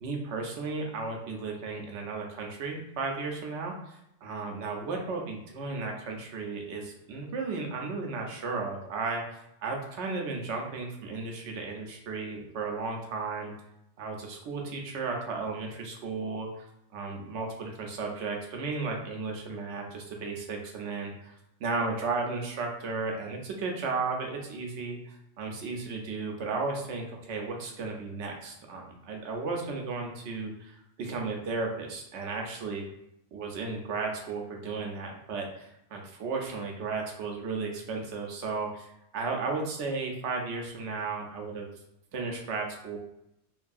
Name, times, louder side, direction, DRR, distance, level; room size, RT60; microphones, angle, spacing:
voice 1, 0.0-13.5 14.0-16.7 16.9-32.9 33.3-41.7 42.1-43.0, right 4 dB, 90° right, 1 dB, 0.9 m, -34 dB
3.0 x 2.6 x 2.3 m, 0.82 s
omnidirectional pair, 1.1 m